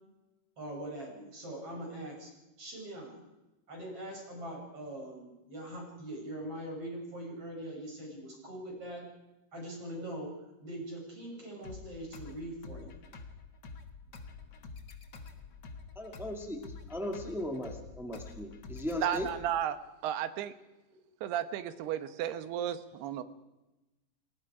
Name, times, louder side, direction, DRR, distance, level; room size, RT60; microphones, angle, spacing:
voice 1, 0.6-2.3 2.6-3.2 3.7-9.0 9.5-10.3 10.6-13.0, right 1 dB, 35° right, -1 dB, 7.7 m, -42 dB
sound 1, 11.6-19.6, left 4 dB, 80° left, 0.9 m, -48 dB
voice 2, 15.9-19.3, left 1 dB, 5° right, 2 dB, 0.4 m, -37 dB
voice 3, 19.0-20.5 21.2-23.2, right 10 dB, 85° right, 11 dB, 3.2 m, -34 dB
30.0 x 19.0 x 4.9 m, 1.0 s
omnidirectional pair, 4.6 m